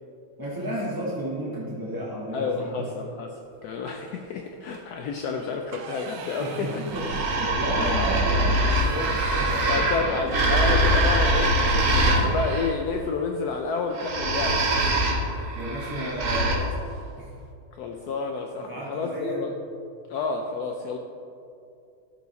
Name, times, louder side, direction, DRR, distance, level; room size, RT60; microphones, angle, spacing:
voice 1, 0.4-2.9 6.4-10.2 15.5-16.8 17.2-17.3 18.6-19.4, equal, 25° right, -5 dB, 0.5 m, -32 dB
voice 2, 2.3-6.7 7.8-8.1 9.7-14.8 17.8-19.5 20.1-21.0, left 4 dB, 75° left, 3 dB, 0.9 m, -30 dB
sound 1, 3.8-4.3 4.6-4.8 5.2-11.2 11.5-11.6 12.0-14.2 15.5-15.8 16.1-16.3 16.6-17.2, right 4 dB, 85° right, 1.6 m, -40 dB
sound 2, 6.9-12.7 13.9-16.6, right 1 dB, 50° right, 1.2 m, -23 dB
13.0 x 4.7 x 4.0 m, 2.6 s
omnidirectional pair, 2.2 m